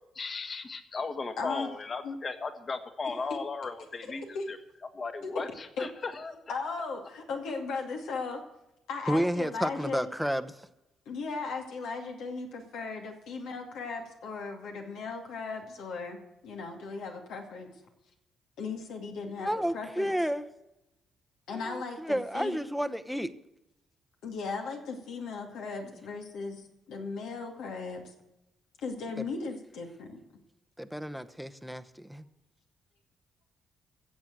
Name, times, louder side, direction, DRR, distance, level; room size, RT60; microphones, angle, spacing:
voice 1, 0.1-4.6 4.9-6.5, left 4 dB, 40° left, 1.6 m, -36 dB
voice 2, 1.4-1.7 2.0-2.2 4.3-4.5 5.2-5.3 5.8-5.9 6.5-8.4 8.9-10.1 11.1-16.2 16.4-17.7 18.6-20.1 21.5-22.6 24.2-26.6 26.9-28.0 28.8-30.2, left 4 dB, 80° left, 2.4 m, -37 dB
voice 3, 9.1-10.7 19.4-20.5 21.5-23.3 29.2-29.3 30.8-32.2, equal, ahead, 0.9 m, -31 dB
15.0 x 7.5 x 7.6 m
cardioid pair, 90°, 0 cm